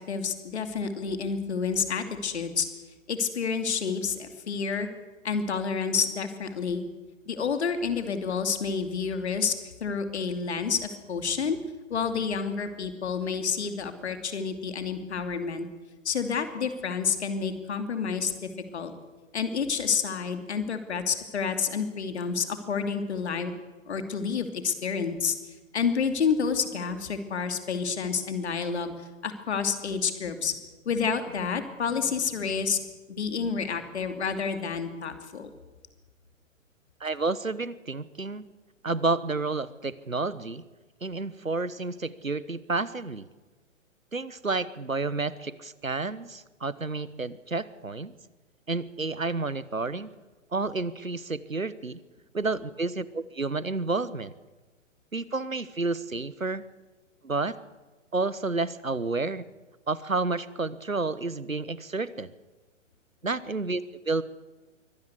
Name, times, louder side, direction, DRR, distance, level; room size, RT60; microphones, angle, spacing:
voice 1, 0.0-2.7 3.1-4.9 5.2-6.8 7.3-9.5 9.8-11.6 11.9-15.7 16.0-18.9 19.3-23.5 23.9-25.3 25.7-30.6 30.8-32.8 33.1-35.5, left 6 dB, 55° left, 8 dB, 2.8 m, -29 dB
voice 2, 37.0-38.5 38.8-40.6 41.0-43.2 44.1-48.1 48.7-50.1 50.5-52.0 52.3-54.3 55.1-56.6 57.2-57.6 58.1-59.5 59.9-62.3 63.2-64.2, right 3 dB, 90° right, 18 dB, 1.1 m, -30 dB
23.5 x 17.5 x 8.3 m, 1.2 s
figure-of-eight pair, 120°, 39 cm